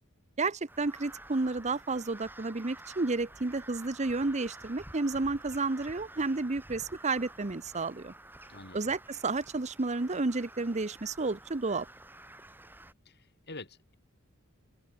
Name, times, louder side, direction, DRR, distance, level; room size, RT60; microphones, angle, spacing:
voice 1, 0.4-8.1 8.7-11.9, right 3 dB, 35° right, 0.8 m, -31 dB
Crow, 0.7-12.9, right 1 dB, 10° right, 2.4 m, -50 dB
voice 2, 8.5-9.0 13.1-13.9, left 2 dB, 50° left, 7.3 m, -47 dB
open air
head